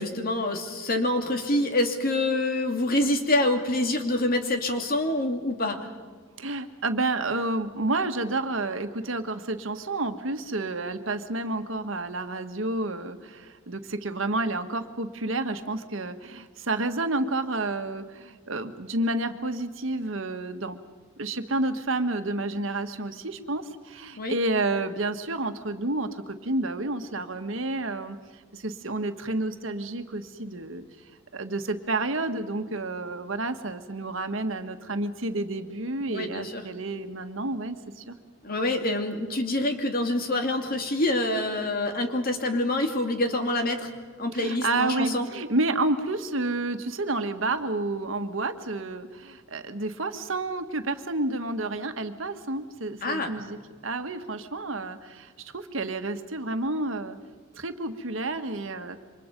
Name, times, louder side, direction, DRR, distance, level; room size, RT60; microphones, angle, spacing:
voice 1, 0.0-5.8 24.2-24.4 36.1-36.6 38.4-43.9 44.2-45.3 53.0-53.3, left 1 dB, 45° left, 4 dB, 2.6 m, -26 dB
voice 2, 6.4-20.8 21.2-28.2 28.5-30.8 31.3-38.1 44.3-57.2 57.5-59.0, right 2 dB, 75° right, 7 dB, 1.5 m, -30 dB
28.5 x 25.0 x 5.3 m, 1.4 s
head